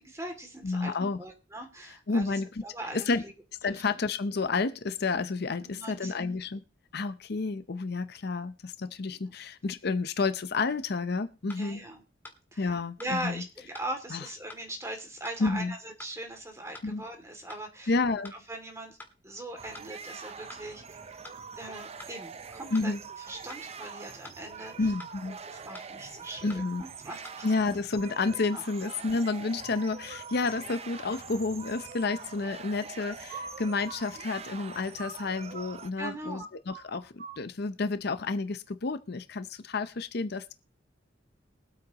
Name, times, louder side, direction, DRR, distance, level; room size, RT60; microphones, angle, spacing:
voice 1, 0.0-0.9 1.2-3.3 3.6-3.8 5.6-6.2 11.6-12.0 12.5-17.9 18.3-19.0 19.2-21.2 21.6-22.9 23.3-24.9 25.5-27.2 28.5-28.6 30.6-30.8 36.0-36.5, right 1 dB, 15° right, 2.5 m, -40 dB
voice 2, 0.6-1.2 2.1-2.5 2.9-3.2 3.6-6.6 6.9-11.8 12.6-13.4 14.1-14.3 15.4-15.7 16.8-17.0 17.9-18.3 22.7-23.0 24.8-25.4 26.4-26.8 27.4-40.5, left 3 dB, 60° left, 0.7 m, -30 dB
sound 1, 11.5-11.6 12.2-12.4 13.0-13.1 13.7-13.9 14.5-14.6 15.2-15.4 16.0-16.1 16.7-16.9 17.5-17.6 18.2-18.4 19.0-19.1 19.7-19.9 20.5-20.6 21.2-21.4 22.0-22.1 22.7-22.9 23.5-23.6 24.2-24.4 25.0-25.1 25.7-25.9 26.5-26.6 27.2-27.4, left 1 dB, 10° left, 1.7 m, -47 dB
sound 2, 19.6-35.9, right 6 dB, 35° right, 0.6 m, -44 dB
sound 3, 30.1-30.7 32.9-35.7 36.0-36.1 36.4-37.4, right 4 dB, 55° right, 2.3 m, -44 dB
22.5 x 8.5 x 3.0 m
head